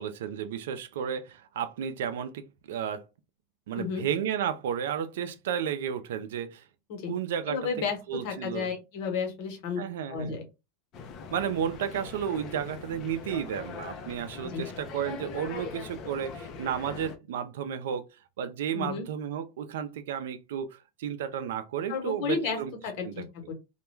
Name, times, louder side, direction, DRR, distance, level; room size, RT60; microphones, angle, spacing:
voice 1, 0.0-3.1 3.7-6.6 7.1-7.6 8.1-8.7 9.8-10.4 11.3-18.1 18.4-22.7 23.0-23.2, right 8 dB, 80° right, 0.4 m, -32 dB
voice 2, 3.7-4.1 6.9-7.1 7.5-9.8 10.1-10.4 14.5-14.7 18.7-19.1 21.9-22.6 22.8-23.5, left 5 dB, 60° left, 1.0 m, -32 dB
sound 1, 10.9-17.2, left 5 dB, 40° left, 0.5 m, -41 dB
2.2 x 2.2 x 3.1 m
supercardioid pair, 125°, 0 cm